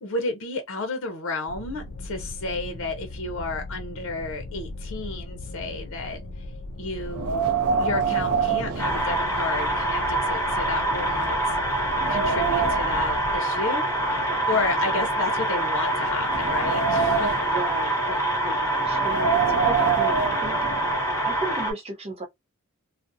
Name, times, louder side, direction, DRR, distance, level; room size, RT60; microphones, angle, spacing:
voice 1, 0.0-6.2 6.8-7.5 7.8-11.3 12.1-13.9 14.5-17.4, left 3 dB, 65° left, 0.7 m, -31 dB
sound 1, 1.5-13.4, left 2 dB, 40° left, 0.3 m, -38 dB
Wind, 7.1-9.7 10.1-10.2 10.8-10.9 11.4-13.0 13.9-15.4 16.0-17.6 18.9-21.0, right 5 dB, 85° right, 0.5 m, -26 dB
sound 2, 8.8-21.7, right 1 dB, 15° left, 0.9 m, -25 dB
voice 2, 17.4-21.0 21.2-22.2, right 2 dB, 30° right, 0.6 m, -36 dB
2.4 x 2.0 x 2.6 m
head